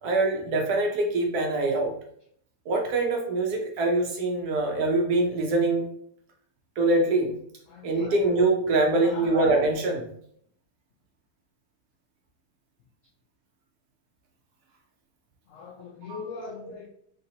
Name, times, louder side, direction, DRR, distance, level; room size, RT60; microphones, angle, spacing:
voice 1, 0.0-1.9 2.7-5.9 6.8-7.4 7.8-10.1 16.1-16.2 16.6-16.7, right 2 dB, 70° right, 1 dB, 1.1 m, -24 dB
voice 2, 7.7-8.1 9.0-9.3 15.5-16.9, left 4 dB, 75° left, -2 dB, 0.7 m, -40 dB
4.0 x 2.7 x 2.7 m, 0.68 s
omnidirectional pair, 1.9 m